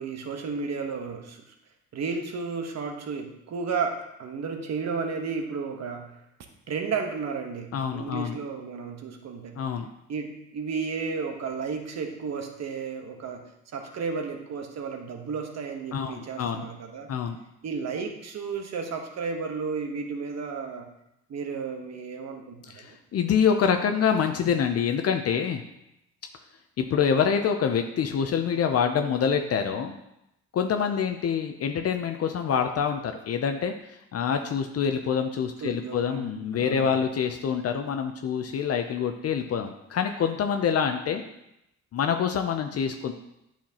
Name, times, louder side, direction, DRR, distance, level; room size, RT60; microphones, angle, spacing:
voice 1, 0.0-1.4 1.9-6.2 6.7-9.6 10.1-17.1 17.6-20.9 21.3-23.0 35.6-36.3 36.5-36.9, right 5 dB, 60° right, 4 dB, 1.2 m, -33 dB
voice 2, 7.7-8.4 9.6-9.9 15.9-16.7 17.1-17.4 22.7-25.6 26.8-30.0 30.5-41.2 41.9-43.1, left 7 dB, 55° left, 6 dB, 0.6 m, -26 dB
8.7 x 5.8 x 2.9 m, 0.84 s
cardioid pair, 90°, 30 cm